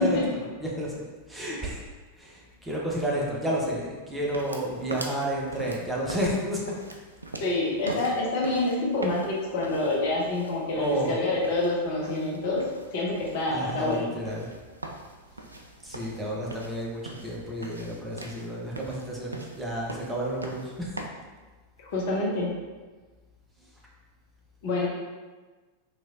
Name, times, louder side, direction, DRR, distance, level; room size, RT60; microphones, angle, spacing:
voice 1, 0.0-1.8 2.2-6.7 10.7-11.2 13.5-14.5 15.8-21.0, right 1 dB, 5° right, -5 dB, 0.8 m, -31 dB
sound 1, 4.2-21.1, right 2 dB, 80° right, 0.3 m, -43 dB
voice 2, 7.4-12.6 12.9-14.1 21.9-22.5 24.6-24.9, left 2 dB, 50° left, -3 dB, 0.8 m, -27 dB
4.1 x 3.1 x 2.4 m, 1.3 s
figure-of-eight pair, 90°, 0 cm